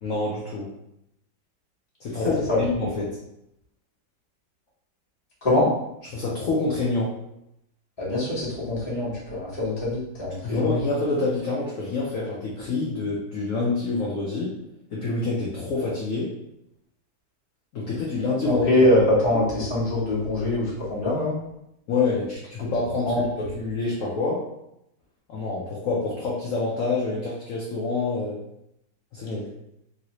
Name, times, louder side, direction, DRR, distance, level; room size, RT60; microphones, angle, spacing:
voice 1, 0.0-0.7 2.0-3.2 6.1-7.1 10.4-14.5 14.9-16.3 17.7-18.7 21.9-24.5 25.3-28.4 29.1-29.5, left 3 dB, 65° left, -5 dB, 0.9 m, -27 dB
voice 2, 5.4-5.7 8.0-10.8 18.7-21.4 23.1-23.2, left 1 dB, 20° left, -8 dB, 0.9 m, -23 dB
3.1 x 2.6 x 2.9 m, 0.82 s
omnidirectional pair, 1.9 m